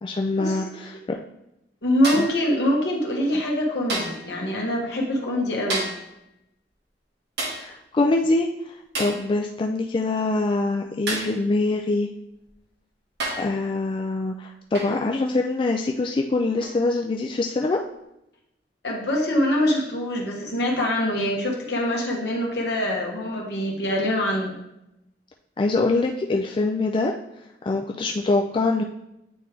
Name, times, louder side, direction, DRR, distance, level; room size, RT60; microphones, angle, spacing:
voice 1, 0.0-1.2 2.2-2.3 7.6-12.1 13.4-17.8 25.6-27.1 27.6-28.8, left 2 dB, 30° left, 1 dB, 0.3 m, -24 dB
voice 2, 1.8-5.9 18.8-24.6, left 1 dB, 70° left, -2 dB, 1.4 m, -24 dB
sound 1, 2.0-2.4 3.9-4.3 5.7-6.1 7.4-7.7 8.9-9.3 11.1-11.4 12.5-12.6 13.2-13.6 14.7-15.0 16.6-16.8, right 2 dB, 65° right, 1.5 m, -30 dB
8.7 x 3.2 x 3.4 m, 0.85 s
head